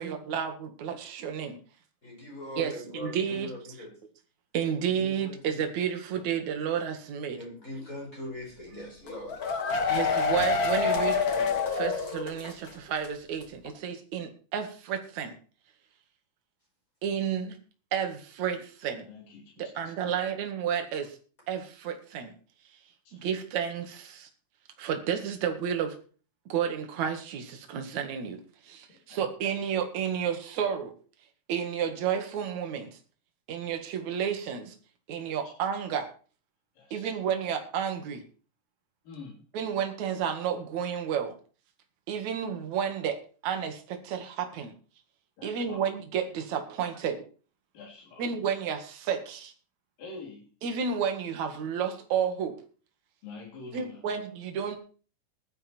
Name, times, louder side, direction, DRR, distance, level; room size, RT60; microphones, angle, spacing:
voice 1, 0.0-1.6 2.6-3.5 4.5-7.4 9.9-11.2 11.7-15.4 17.0-17.6 17.9-19.1 19.6-21.2 21.5-22.3 23.1-24.3 24.8-26.0 26.5-28.4 28.6-30.9 31.5-32.9 33.5-34.7 35.1-36.1 36.9-38.2 39.5-41.3 42.1-43.2 43.4-44.7 45.4-47.2 48.2-49.5 50.6-52.6 53.7-54.8, right 8 dB, 60° right, 5 dB, 3.1 m, -31 dB
voice 2, 2.0-3.9 4.9-5.7 7.4-9.5, left 1 dB, 25° left, -2 dB, 5.9 m, -41 dB
sound 1, 9.1-12.7 13.0-13.1 13.4-13.5, left 5 dB, 45° left, 1.3 m, -27 dB
voice 3, 19.1-19.7 23.0-23.2 29.1-29.3 35.4-35.5 36.8-37.2 39.0-39.5 45.4-45.8 47.7-48.2 50.0-50.5 53.2-54.0, left 3 dB, 85° left, -2 dB, 5.2 m, -46 dB
16.0 x 11.5 x 4.5 m, 0.39 s
omnidirectional pair, 3.9 m